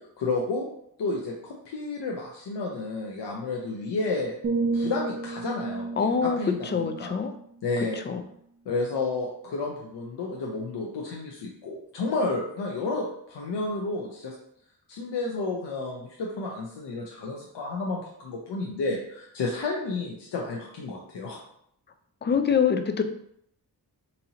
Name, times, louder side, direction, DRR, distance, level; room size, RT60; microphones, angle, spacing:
voice 1, 0.2-0.7 1.0-4.3 4.7-7.1 7.6-8.0 8.7-14.3 14.9-21.4, left 3 dB, 90° left, -2 dB, 0.6 m, -31 dB
sound 1, 4.4-8.3 8.8-9.1, right 3 dB, 35° right, 0.4 m, -33 dB
voice 2, 6.0-7.3 8.1-8.2 22.2-23.0, left 6 dB, 30° left, 8 dB, 0.4 m, -25 dB
4.2 x 2.7 x 2.8 m, 0.70 s
wide cardioid pair, 85°, 40 cm